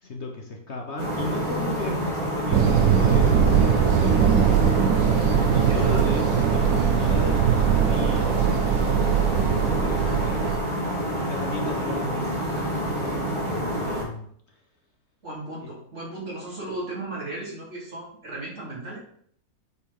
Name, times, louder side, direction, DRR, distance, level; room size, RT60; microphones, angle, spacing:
voice 1, 0.0-4.9 5.5-10.4 11.3-14.6 15.6-15.7, left 2 dB, 50° left, 2 dB, 1.3 m, -36 dB
sound 1, 1.0-14.1, equal, 20° right, 2.0 m, -28 dB
sound 2, 2.5-10.6, right 8 dB, 70° right, 1.2 m, -21 dB
voice 2, 5.7-6.1 15.2-19.0, right 2 dB, 50° right, -6 dB, 3.6 m, -35 dB
8.3 x 4.5 x 5.4 m, 0.62 s
omnidirectional pair, 1.6 m